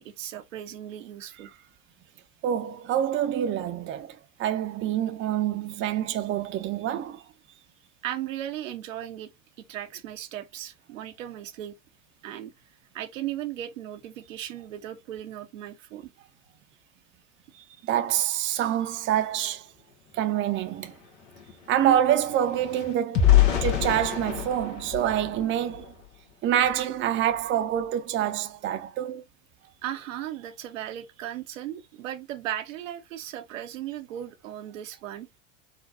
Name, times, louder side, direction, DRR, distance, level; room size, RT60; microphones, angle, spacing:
voice 1, 0.0-1.5 8.0-9.3 9.6-11.7 12.2-12.5 12.9-16.3 17.5-17.8 29.6-35.3, right 12 dB, 80° right, 0.8 m, -37 dB
voice 2, 2.4-7.2 17.8-19.7 20.1-20.9 21.7-23.3 23.6-25.9 26.4-29.2, right 10 dB, 30° right, 0.6 m, -26 dB
sound 1, 20.2-20.3 20.6-26.1 26.6-26.8 27.1-27.4, left 10 dB, 80° left, 1.3 m, -26 dB
4.0 x 2.2 x 2.5 m
hypercardioid pair, 90°, 38 cm